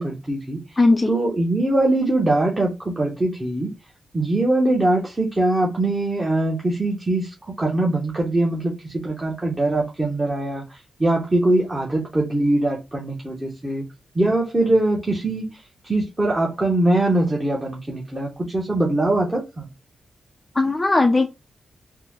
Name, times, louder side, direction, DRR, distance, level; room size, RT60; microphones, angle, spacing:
voice 1, 0.0-0.6 1.1-3.7 4.1-13.8 14.1-19.7, right 2 dB, 15° right, 0.7 m, -22 dB
voice 2, 0.8-1.1 20.6-21.3, left 3 dB, 20° left, 0.3 m, -17 dB
3.5 x 2.0 x 3.0 m
wide cardioid pair, 135°, 0 cm